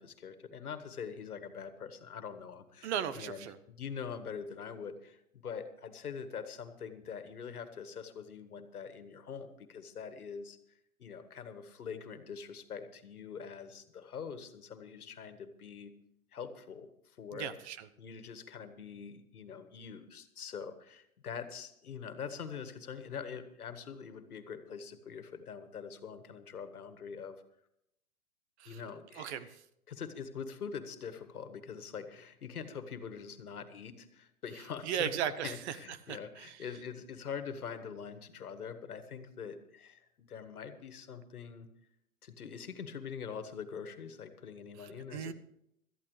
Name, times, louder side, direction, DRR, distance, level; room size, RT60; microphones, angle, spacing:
voice 1, 0.0-10.6 11.0-15.9 16.3-17.5 18.0-27.4 28.7-29.5 29.9-35.1 35.4-41.7 42.2-45.3, left 6 dB, 85° left, 10 dB, 1.8 m, -44 dB
voice 2, 2.8-3.6 17.3-17.9 28.6-28.8 29.2-29.5 34.8-35.8 36.1-36.6 44.8-45.3, right 9 dB, 50° right, 14 dB, 1.1 m, -37 dB
17.5 x 13.5 x 3.3 m, 0.76 s
hypercardioid pair, 130°, 43 cm